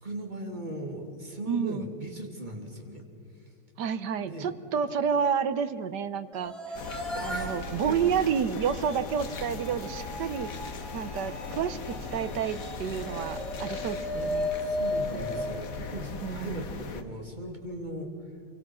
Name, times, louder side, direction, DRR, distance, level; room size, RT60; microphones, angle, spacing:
voice 1, 0.0-3.1 4.2-4.5 7.1-7.5 7.9-8.0 14.7-18.1, right 1 dB, 20° right, 2 dB, 2.8 m, -38 dB
voice 2, 1.5-1.9 3.8-6.8 7.2-10.5 10.9-14.5 16.2-16.7, right 7 dB, 60° right, 12 dB, 1.3 m, -30 dB
sound 1, 6.3-16.5, left 1 dB, ahead, 4.4 m, -36 dB
sound 2, 6.7-17.0, left 4 dB, 45° left, 1.5 m, -39 dB
26.5 x 24.5 x 6.2 m, 2.4 s
omnidirectional pair, 2.3 m